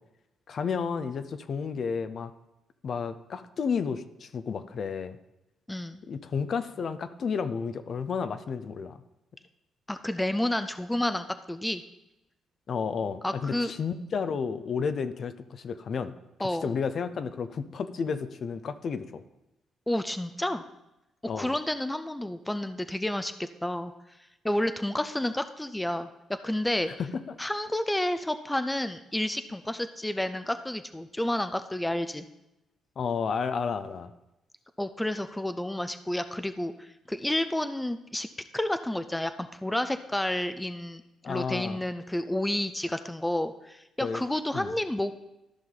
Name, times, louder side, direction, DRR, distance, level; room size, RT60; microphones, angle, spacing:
voice 1, 0.5-2.3 2.8-5.2 6.1-9.0 12.7-16.1 16.6-19.2 21.3-21.5 27.0-27.4 33.0-34.1 41.2-41.8 44.0-44.2 44.5-44.7, left 6 dB, 55° left, 11 dB, 0.6 m, -32 dB
voice 2, 5.7-6.0 9.9-11.8 13.2-13.7 16.4-16.7 19.9-20.6 21.3-23.9 24.4-26.9 27.4-32.3 34.8-38.3 38.5-41.0 41.3-45.1, left 1 dB, 10° left, 11 dB, 0.4 m, -30 dB
13.5 x 5.6 x 3.9 m, 0.92 s
cardioid pair, 90°, 0 cm